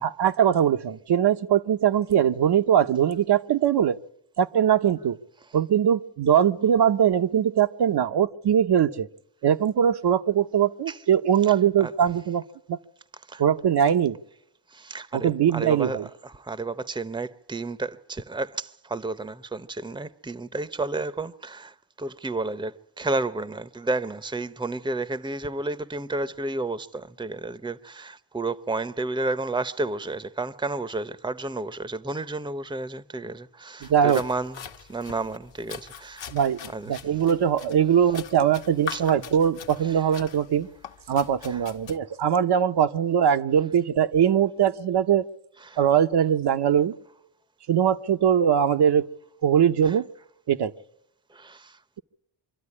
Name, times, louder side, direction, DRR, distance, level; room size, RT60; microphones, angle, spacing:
voice 1, 0.0-4.0 4.4-5.2 5.5-9.1 9.4-12.4 12.7-12.8 13.4-14.2 15.1-16.0 33.9-34.2 36.3-40.7 41.1-45.3 45.8-46.9 47.7-49.1 49.4-50.1 50.5-50.7, right 9 dB, 65° right, 0.9 m, -21 dB
voice 2, 14.7-34.6 34.9-36.3 36.7-37.0 38.9-39.0 39.9-40.1 41.4-41.6 45.6-45.8 49.8-49.9 51.3-51.8, right 2 dB, 10° right, 0.8 m, -31 dB
sound 1, 33.8-42.0, left 8 dB, 85° left, 1.3 m, -42 dB
25.0 x 13.0 x 9.7 m
cardioid pair, 85°, 44 cm